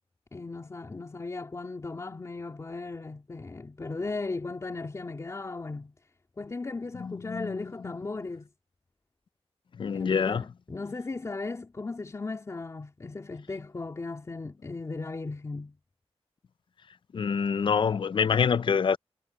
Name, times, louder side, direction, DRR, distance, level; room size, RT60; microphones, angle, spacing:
voice 1, 0.3-5.9 6.4-8.5 9.9-15.8, left 3 dB, 30° left, 3.3 m, -37 dB
voice 2, 7.0-7.6 9.8-10.4 17.1-19.0, left 6 dB, 50° left, 0.5 m, -26 dB
wide cardioid pair, 180°, 11 cm